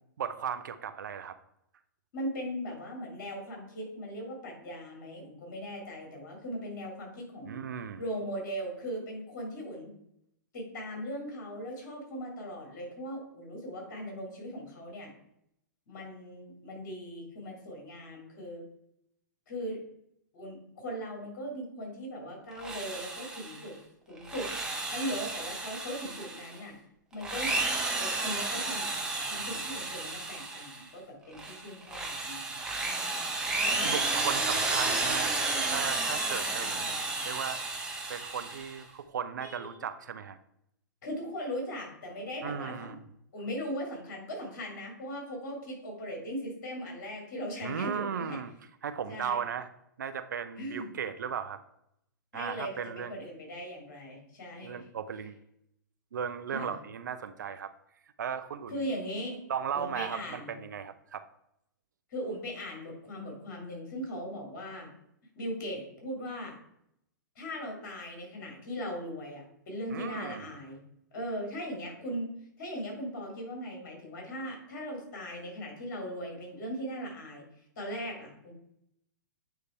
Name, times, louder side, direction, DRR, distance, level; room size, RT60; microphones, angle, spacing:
voice 1, 0.2-1.4 7.4-8.0 32.5-32.6 33.8-35.3 35.7-37.6 38.1-40.4 42.4-43.0 47.6-48.5 48.8-49.7 50.0-51.6 52.3-53.2 54.6-55.4 56.1-57.7 58.2-58.8 59.5-61.2 69.9-70.5, right 7 dB, 65° right, 10 dB, 0.6 m, -36 dB
voice 2, 2.1-7.6 8.0-9.9 10.5-15.1 15.9-18.6 19.5-19.8 20.3-23.8 24.1-24.5 24.9-26.8 27.1-27.6 27.9-29.0 29.2-32.6 33.6-34.0 39.4-39.8 41.0-42.9 43.3-48.4 49.1-49.4 50.5-50.9 52.3-54.8 56.5-56.8 58.7-59.4 59.7-60.6 62.1-64.9 65.3-66.5 67.4-70.8 71.1-72.3 72.6-77.4 77.8-78.5, equal, 50° left, 1 dB, 2.8 m, -39 dB
Drill, 22.5-23.7 24.2-26.6 27.1-30.8 31.3-38.8, right 3 dB, 5° right, 1.1 m, -32 dB
8.8 x 3.3 x 4.5 m, 0.77 s
figure-of-eight pair, 110°, 11 cm